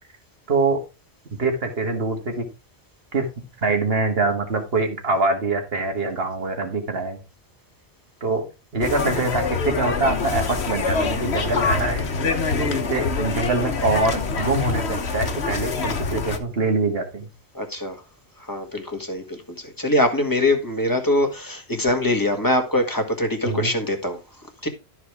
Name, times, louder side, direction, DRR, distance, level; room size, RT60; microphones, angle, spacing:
voice 1, 0.5-0.8 1.4-2.5 3.1-3.3 3.6-7.2 8.2-8.4 8.7-12.1 12.6-17.3 23.4-23.7, right 3 dB, 70° right, 2.1 m, -24 dB
sound 1, 8.8-16.4, left 4 dB, 85° left, 1.5 m, -25 dB
voice 2, 17.5-18.0 18.5-24.2 24.6-24.7, left 1 dB, 20° left, 1.8 m, -23 dB
12.5 x 4.8 x 4.8 m
omnidirectional pair, 1.1 m